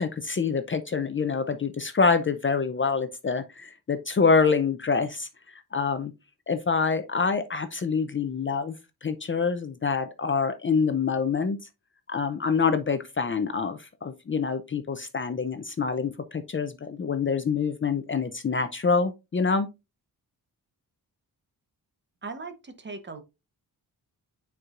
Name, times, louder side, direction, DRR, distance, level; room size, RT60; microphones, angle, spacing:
voice 1, 0.0-6.1 6.5-8.8 9.0-11.6 12.1-19.7, left 5 dB, 30° left, 0.5 m, -26 dB
voice 2, 22.2-23.2, right 3 dB, 30° right, 0.9 m, -38 dB
9.2 x 4.6 x 2.5 m
wide cardioid pair, 170°, 39 cm